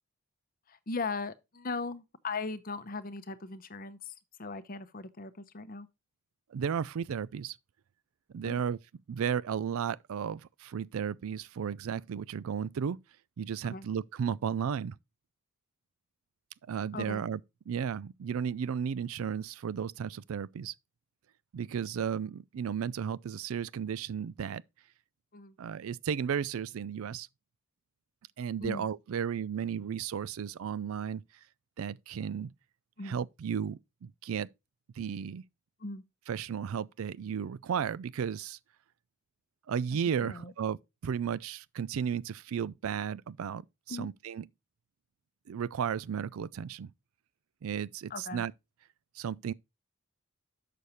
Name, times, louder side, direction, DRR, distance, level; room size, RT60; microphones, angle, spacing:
voice 1, 0.7-4.1 4.4-5.9 8.4-8.6 13.6-13.9 16.9-17.2 25.3-25.6 28.6-28.9 33.0-33.1 35.8-36.0 40.2-40.5 43.9-44.1 48.1-48.4, left 3 dB, 40° left, 0.8 m, -38 dB
voice 2, 6.5-7.6 8.3-8.8 9.1-13.0 13.4-15.0 16.7-17.4 17.7-20.7 21.5-24.6 25.6-27.3 28.4-31.2 31.8-32.5 33.0-34.5 35.0-35.4 36.3-38.6 39.7-40.8 41.0-44.5 45.5-46.9 47.6-48.5 49.2-49.5, right 7 dB, 70° right, 0.4 m, -34 dB
6.8 x 6.5 x 4.2 m
head